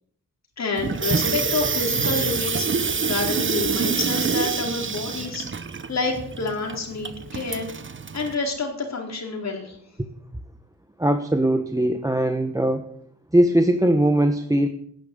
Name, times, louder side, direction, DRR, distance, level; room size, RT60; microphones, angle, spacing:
voice 1, 0.6-5.5 5.9-7.7 8.1-9.8, left 3 dB, 50° left, 1 dB, 4.5 m, -28 dB
Water tap faucet / Sink (filling or washing), 0.8-8.3, right 5 dB, 35° right, 1.0 m, -26 dB
voice 2, 11.0-12.9 13.3-14.7, right 1 dB, 10° right, 7 dB, 1.1 m, -20 dB
14.0 x 10.5 x 8.0 m, 0.69 s
wide cardioid pair, 100°, 34 cm